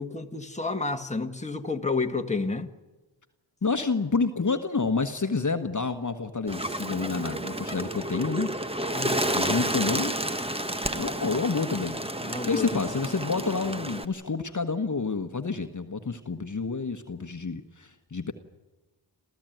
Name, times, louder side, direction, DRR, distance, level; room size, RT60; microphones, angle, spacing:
voice 1, 0.0-2.7 8.9-9.3 12.2-12.9, left 3 dB, 15° left, 1.7 m, -30 dB
voice 2, 3.6-8.5 9.3-10.1 10.9-18.3, left 4 dB, 40° left, 1.4 m, -29 dB
Bird, 6.5-14.1, right 1 dB, 10° right, 1.3 m, -30 dB
28.5 x 14.5 x 9.2 m
wide cardioid pair, 70°, 46 cm